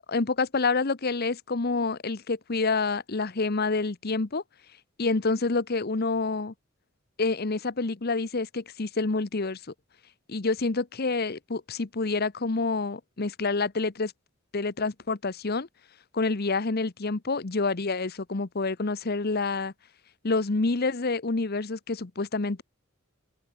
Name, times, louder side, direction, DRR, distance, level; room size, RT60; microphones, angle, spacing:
voice 1, 0.1-4.4 5.0-6.5 7.2-9.6 10.3-14.1 14.5-15.7 16.1-19.7 20.2-22.6, left 3 dB, 50° left, 0.9 m, -28 dB
open air
head